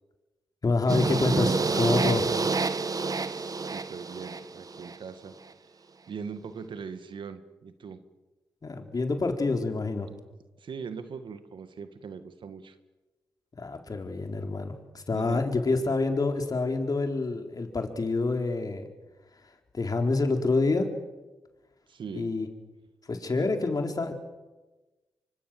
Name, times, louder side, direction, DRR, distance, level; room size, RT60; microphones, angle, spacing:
voice 1, 0.6-2.4 8.6-10.1 13.6-18.8 19.7-20.9 22.1-22.5 23.1-24.1, left 3 dB, 45° left, 4 dB, 4.3 m, -27 dB
sound 1, 0.9-5.0, right 4 dB, 45° right, 1.4 m, -28 dB
voice 2, 3.3-8.0 10.6-12.8 15.1-15.4 21.9-22.3 23.4-23.5, right 6 dB, 70° right, 10 dB, 1.9 m, -41 dB
26.5 x 25.0 x 7.8 m, 1.2 s
supercardioid pair, 45°, 9 cm